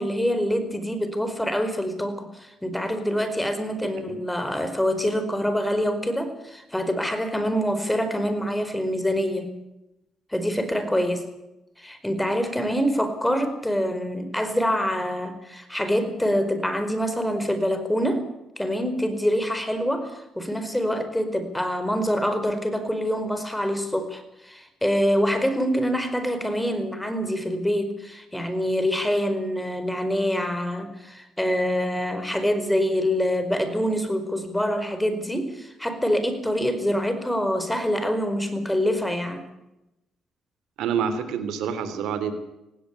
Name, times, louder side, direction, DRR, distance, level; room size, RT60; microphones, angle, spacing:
voice 1, 0.0-9.5 10.3-11.3 11.8-18.3 18.6-39.5, equal, 5° left, 9 dB, 4.8 m, -25 dB
voice 2, 3.8-4.2 40.8-42.3, right 7 dB, 85° right, 10 dB, 3.1 m, -28 dB
19.5 x 16.5 x 8.3 m, 0.90 s
cardioid pair, 90°, 0 cm